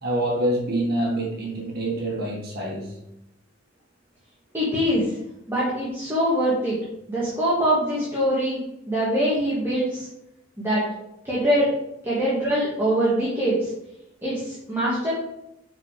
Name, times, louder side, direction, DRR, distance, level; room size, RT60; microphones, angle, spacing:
voice 1, 0.0-3.0, right 1 dB, 55° right, -3 dB, 1.8 m, -26 dB
voice 2, 4.5-5.2 5.5-6.8 7.1-8.6 8.9-10.1 10.6-10.8 11.2-11.7 12.0-13.7 14.2-15.1, equal, 15° right, -8 dB, 2.0 m, -23 dB
6.9 x 4.7 x 5.0 m, 0.85 s
head